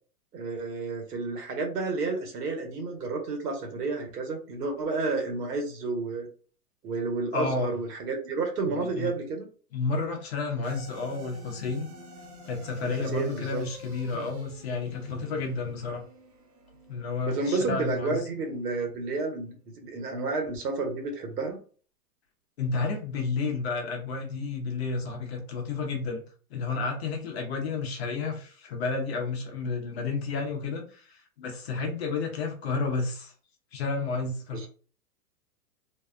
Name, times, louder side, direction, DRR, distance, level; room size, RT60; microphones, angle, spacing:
voice 1, 0.3-6.3 6.8-9.5 12.8-13.6 17.2-19.5 19.8-21.6 34.5-34.7, right 3 dB, 90° right, 2 dB, 1.2 m, -31 dB
voice 2, 7.3-7.7 8.7-9.1 9.7-11.9 12.4-16.0 16.9-18.2 22.6-26.2 26.5-33.3 33.7-34.7, left 4 dB, 45° left, 2 dB, 0.7 m, -31 dB
sound 1, 10.6-19.1, equal, 65° right, 1.0 m, -50 dB
2.6 x 2.2 x 2.4 m, 0.39 s
hypercardioid pair, 165°, 46 cm